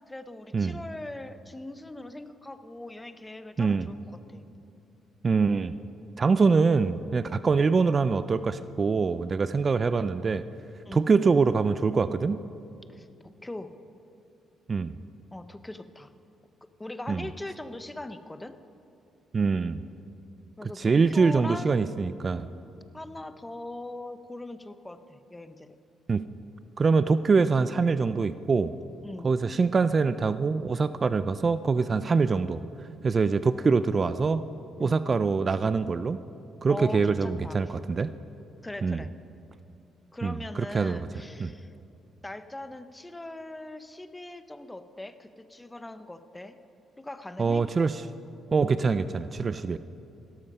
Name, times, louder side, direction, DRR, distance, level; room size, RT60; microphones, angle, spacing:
voice 1, 0.1-4.5 10.9-11.1 12.9-13.1 13.4-13.7 15.3-16.1 16.8-18.6 20.6-21.8 22.9-25.8 29.0-29.3 34.8-35.0 36.7-37.6 38.6-39.1 40.1-41.7 42.2-46.6 47.0-47.6, left 1 dB, 10° left, 11 dB, 0.8 m, -40 dB
voice 2, 5.2-5.7 6.2-10.4 10.9-12.4 14.7-14.9 17.1-17.2 19.3-19.8 20.8-22.5 26.1-26.2 26.8-28.7 29.2-32.6 33.0-34.4 34.8-36.2 36.6-38.1 38.8-39.0 40.2-41.0 41.4-41.5 47.4-48.0 48.5-49.8, right 4 dB, 35° right, 13 dB, 0.4 m, -24 dB
17.0 x 13.0 x 5.4 m, 2.6 s
cardioid pair, 90°, 0 cm